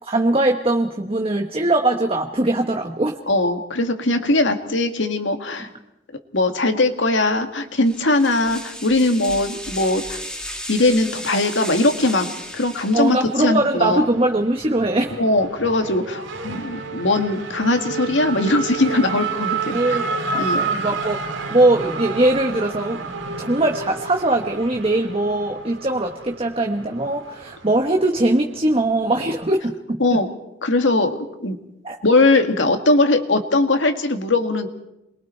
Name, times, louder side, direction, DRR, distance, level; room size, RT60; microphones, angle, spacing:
voice 1, 0.0-3.2 12.9-15.2 19.7-21.2 21.5-23.0 23.4-30.2 31.8-32.0, right 2 dB, 30° right, 3 dB, 1.2 m, -21 dB
voice 2, 3.3-5.7 6.3-10.2 10.7-14.0 15.2-20.0 20.3-20.6 30.0-30.3 30.6-31.6 32.0-34.7, left 2 dB, 75° left, 6 dB, 1.9 m, -20 dB
sound 1, 7.8-13.4, equal, 5° left, 2.0 m, -34 dB
Race car auto racing / Accelerating revving vroom, 12.4-29.4, right 4 dB, 80° right, 2.6 m, -31 dB
28.0 x 22.5 x 4.5 m, 0.89 s
head